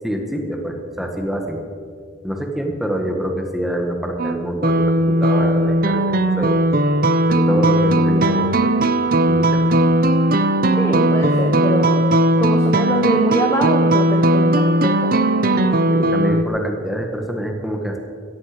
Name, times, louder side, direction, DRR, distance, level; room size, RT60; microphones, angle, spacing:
voice 1, 0.0-1.6 2.2-6.0 6.4-6.5 7.3-8.5 9.3-9.8 15.9-18.0, right 1 dB, ahead, 2 dB, 1.6 m, -25 dB
sound 1, 4.2-16.4, right 1 dB, 50° right, 0.7 m, -17 dB
voice 2, 10.8-12.1 12.4-15.1, equal, 15° left, 2 dB, 1.0 m, -24 dB
16.5 x 14.5 x 5.1 m, 2.2 s
head